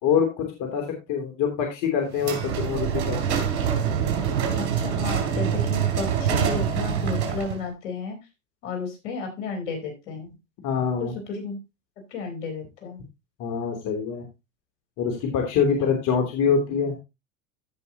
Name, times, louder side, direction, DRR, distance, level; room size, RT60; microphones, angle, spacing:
voice 1, 0.0-3.5 10.6-11.1 13.4-14.2 15.0-17.0, left 6 dB, 55° left, 2 dB, 3.1 m, -25 dB
sound 1, 2.2-7.6, right 8 dB, 75° right, 3.4 m, -25 dB
voice 2, 4.5-8.2 8.6-10.3 11.0-11.6 12.1-13.0, left 4 dB, 75° left, 3 dB, 4.1 m, -33 dB
15.5 x 5.6 x 2.9 m, 0.24 s
hypercardioid pair, 100°, 36 cm